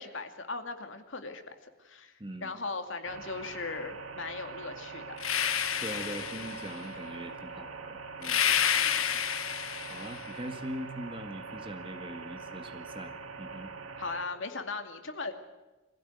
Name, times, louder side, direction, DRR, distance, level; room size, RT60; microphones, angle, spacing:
voice 1, 0.0-1.5 1.8-5.1 8.7-9.1 14.0-15.3, left 3 dB, 65° left, 6 dB, 2.4 m, -38 dB
sound 1, 3.0-14.3, right 4 dB, 85° right, 2.0 m, -43 dB
sound 2, 5.2-6.8 8.2-10.3, left 9 dB, 80° left, 1.5 m, -29 dB
voice 2, 5.8-8.4 9.9-13.7, right 1 dB, 25° right, 6 dB, 2.0 m, -41 dB
25.0 x 16.5 x 9.5 m, 1.1 s
head